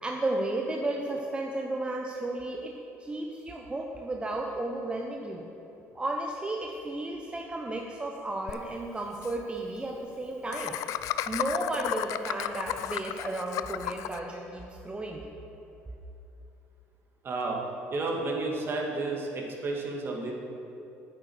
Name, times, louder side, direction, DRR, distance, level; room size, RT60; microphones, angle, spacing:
voice 1, 0.0-5.4 5.9-10.8 11.3-15.2, right 2 dB, 20° right, 1 dB, 1.0 m, -33 dB
Laughter, 8.5-8.6 8.8-8.9 9.1-9.3 10.5-14.2, left 13 dB, 70° left, 0.4 m, -33 dB
voice 2, 17.2-17.6 17.9-20.3, right 3 dB, 40° right, 0 dB, 2.3 m, -31 dB
9.1 x 8.8 x 6.4 m, 2.9 s
supercardioid pair, 85°, 6 cm